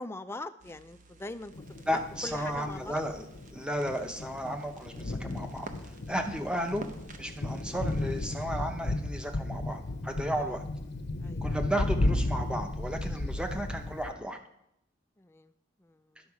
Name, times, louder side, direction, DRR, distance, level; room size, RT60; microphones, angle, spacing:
voice 1, 0.0-1.8 2.2-3.0 10.3-10.5 11.2-11.5 15.2-15.5 15.8-16.2, left 2 dB, 10° left, 10 dB, 0.3 m, -42 dB
sound 1, 0.6-8.5, right 3 dB, 40° right, 0.7 m, -51 dB
Thunder, 1.5-14.1, left 2 dB, 55° left, 0.7 m, -34 dB
voice 2, 1.9-3.2 3.5-5.7 6.1-6.9 7.2-10.6 11.4-14.4, equal, 5° right, 5 dB, 0.7 m, -34 dB
10.5 x 6.2 x 4.8 m, 0.78 s
head